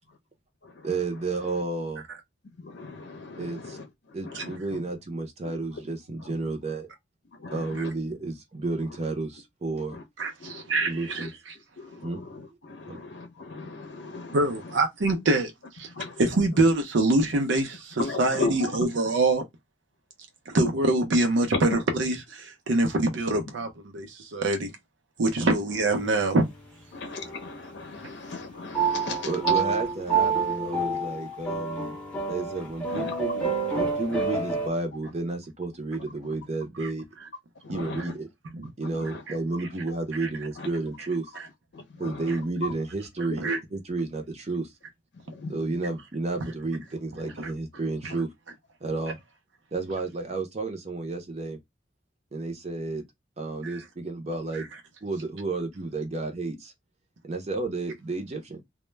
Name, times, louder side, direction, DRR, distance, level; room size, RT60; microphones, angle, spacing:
voice 1, 0.8-2.0 3.4-3.8 4.1-6.9 7.5-10.0 10.8-11.3 12.0-12.2 12.9-13.0 29.2-32.0 32.3-33.5 33.8-37.0 37.7-38.3 38.8-41.3 42.0-44.7 45.5-48.3 48.8-49.2 49.7-51.6 52.3-53.0 53.4-54.7 55.0-56.7 57.2-58.6, right 3 dB, 35° right, 0.5 m, -31 dB
voice 2, 2.6-3.9 4.2-4.6 7.4-7.7 9.9-10.0 10.4-10.7 11.8-14.4 15.9-16.2 18.0-18.9 21.5-21.8 26.9-29.3 32.9-33.1 34.1-34.2 37.6-38.0 39.1-39.2 40.6-40.7 41.7-42.2 45.3-45.5, left 3 dB, 70° left, 0.6 m, -36 dB
voice 3, 10.2-11.3 14.3-15.5 15.8-15.9 16.2-19.4 20.5-24.7 25.2-26.5 36.8-36.9 38.6-38.7 40.2-40.3 43.4-43.6 47.4-47.5 53.6-53.7 54.5-54.6, right 2 dB, 85° right, 0.5 m, -24 dB
sound 1, 25.7-26.4 27.2-27.8 28.7-34.7, right 5 dB, 5° left, 0.6 m, -28 dB
2.1 x 2.0 x 3.1 m
head